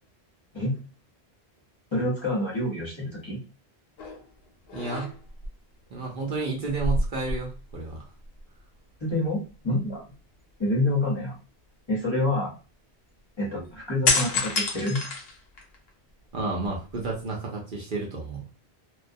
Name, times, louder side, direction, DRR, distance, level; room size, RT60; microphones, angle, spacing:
voice 1, 1.9-3.4 9.0-10.0 10.6-11.4 11.9-12.5 13.4-15.0, left 1 dB, 30° left, -5 dB, 0.7 m, -27 dB
sound 1, 4.0-4.3 4.7-5.5 6.7-7.9 8.2-8.4 14.0-15.9 16.4-17.3, left 3 dB, 70° left, 0.8 m, -28 dB
voice 2, 4.7-5.1 5.9-8.0 16.3-18.4, right 3 dB, 55° right, -1 dB, 0.7 m, -31 dB
2.2 x 2.1 x 2.6 m, 0.35 s
omnidirectional pair, 1.1 m